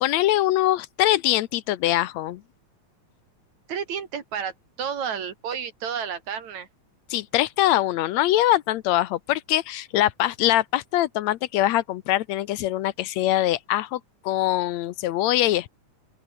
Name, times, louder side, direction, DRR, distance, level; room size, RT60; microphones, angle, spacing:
voice 1, 0.0-2.4 7.1-15.7, left 14 dB, 75° left, 1.9 m, -23 dB
voice 2, 3.7-4.5 4.8-6.7, right 7 dB, 70° right, 3.9 m, -31 dB
open air
omnidirectional pair, 3.3 m